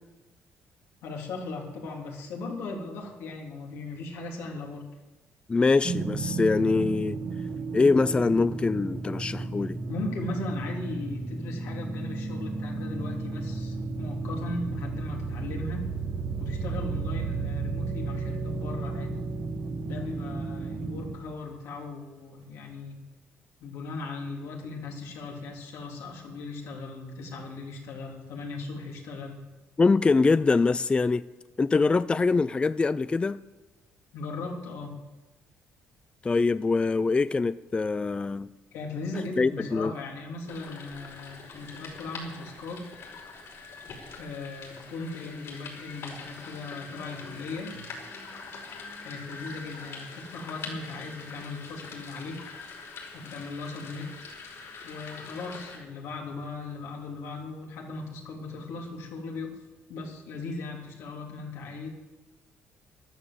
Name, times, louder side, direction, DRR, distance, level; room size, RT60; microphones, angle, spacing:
voice 1, 1.0-4.8 9.9-15.9 16.4-19.2 19.8-23.0 23.6-29.4 34.1-34.9 38.7-42.9 44.2-47.9 49.0-52.6 53.1-54.1 54.8-59.5 59.9-61.9, left 3 dB, 85° left, 3.4 m, -38 dB
voice 2, 5.5-7.2 7.7-9.8 29.8-31.2 31.6-33.4 36.2-38.5 39.4-39.9, left 4 dB, 20° left, 0.4 m, -24 dB
sound 1, 5.8-21.2, right 4 dB, 55° right, 1.7 m, -33 dB
sound 2, 40.5-55.8, left 4 dB, 70° left, 5.3 m, -43 dB
13.0 x 12.0 x 7.7 m
cardioid pair, 100°, 5 cm